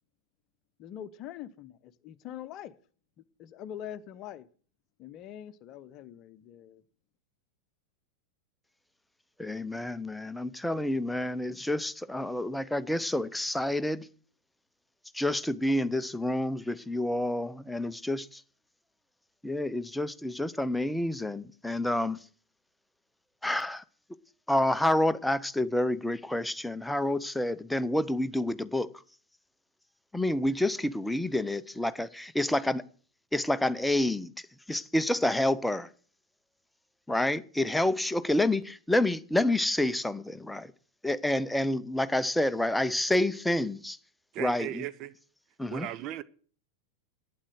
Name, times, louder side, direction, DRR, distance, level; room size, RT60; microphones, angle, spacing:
voice 1, 0.8-2.7 3.4-4.5 5.0-6.8, left 10 dB, 35° left, 0.9 m, -43 dB
voice 2, 9.4-14.0 15.1-18.3 19.4-22.2 23.4-23.8 24.5-28.9 30.1-32.8 33.3-34.3 34.7-35.9 37.1-40.7 41.0-44.0 44.4-44.8 45.6-45.9, left 1 dB, 5° left, 0.7 m, -28 dB
voice 3, 44.3-45.1 45.7-46.2, right 13 dB, 35° right, 0.8 m, -37 dB
11.5 x 9.5 x 6.4 m
figure-of-eight pair, 90°, 0 cm